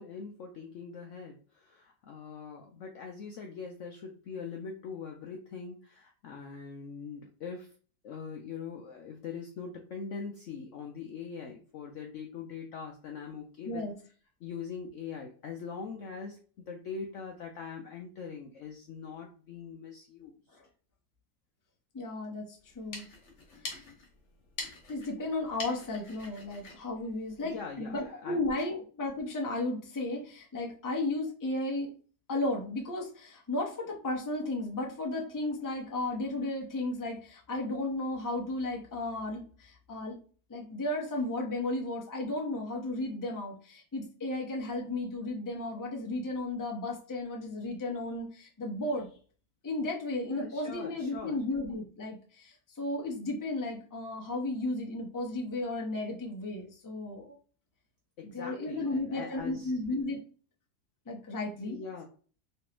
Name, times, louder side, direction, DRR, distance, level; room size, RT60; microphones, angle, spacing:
voice 1, 0.0-7.7 8.0-13.8 14.4-20.3 27.4-28.4 50.2-51.4 58.2-59.7 61.7-62.0, left 6 dB, 70° left, 2 dB, 0.7 m, -42 dB
voice 2, 21.9-23.0 23.6-23.8 24.9-31.9 32.3-40.2 40.5-49.1 49.6-57.4 58.2-60.2 61.1-61.8, left 2 dB, 20° left, -1 dB, 0.5 m, -34 dB
sound 1, 22.6-27.9, left 2 dB, 50° left, 1.3 m, -45 dB
3.3 x 3.1 x 3.0 m, 0.40 s
omnidirectional pair, 1.8 m